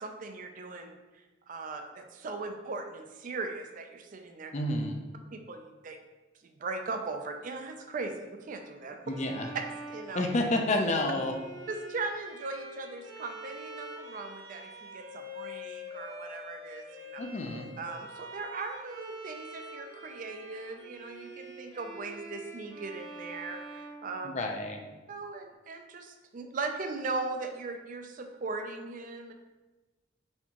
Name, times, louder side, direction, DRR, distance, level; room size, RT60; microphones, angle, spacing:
voice 1, 0.0-4.5 5.3-6.0 6.4-9.0 9.5-9.6 9.9-10.2 11.7-17.2 17.8-24.3 25.1-29.3, right 3 dB, 45° right, 5 dB, 0.4 m, -39 dB
voice 2, 4.5-5.0 9.1-9.5 10.1-11.3 17.2-17.7 24.2-24.9, left 1 dB, 40° left, 3 dB, 0.5 m, -29 dB
Bowed string instrument, 9.0-24.8, equal, 85° right, 1.0 m, -46 dB
4.2 x 3.5 x 2.9 m, 1.2 s
head